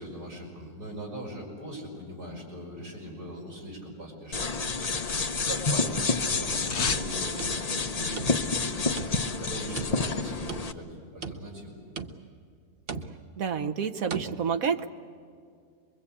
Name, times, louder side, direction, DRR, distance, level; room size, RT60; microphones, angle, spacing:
voice 1, 0.0-4.5 5.3-11.8, equal, 90° right, -3 dB, 5.8 m, -40 dB
sound 1, 4.3-10.7, left 4 dB, 35° left, 0.7 m, -29 dB
sound 2, 4.4-5.6 5.8-7.1 7.4-7.5, left 5 dB, 75° left, 1.8 m, -34 dB
sound 3, 7.4-8.7 9.0-9.4 9.8-10.9 11.2-11.7 12.0-12.4 12.9-13.4 14.1-14.3, right 5 dB, 45° right, 1.0 m, -39 dB
voice 2, 13.4-14.9, right 6 dB, 65° right, 7 dB, 1.4 m, -29 dB
25.5 x 22.5 x 8.5 m, 2.2 s
omnidirectional pair, 1.6 m